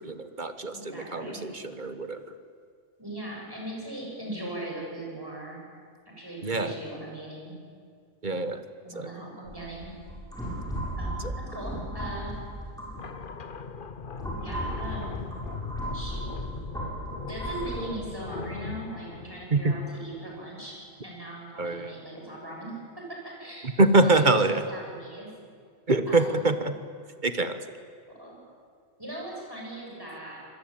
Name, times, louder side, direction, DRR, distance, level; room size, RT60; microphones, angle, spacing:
voice 1, 0.0-2.3 6.4-6.8 8.2-8.7 8.9-9.1 11.2-11.3 19.5-19.7 21.6-22.0 23.6-24.7 25.9-26.8 27.2-27.7, right 2 dB, 40° right, 10 dB, 1.4 m, -25 dB
voice 2, 0.7-1.4 3.0-5.6 6.1-7.5 8.8-9.9 11.0-11.2 11.5-12.3 14.4-15.3 15.9-16.3 17.1-20.8 21.0-22.8 23.1-23.7 24.0-24.4 24.7-25.3 26.1-26.3 28.2-28.4 29.0-30.4, right 1 dB, 20° right, -2 dB, 7.8 m, -39 dB
sound 1, 9.5-13.3 13.9-17.8, equal, 5° left, 7.3 m, -35 dB
sound 2, 13.0-20.4, left 5 dB, 45° left, 1.1 m, -40 dB
26.5 x 21.0 x 9.0 m, 2.1 s
omnidirectional pair, 1.3 m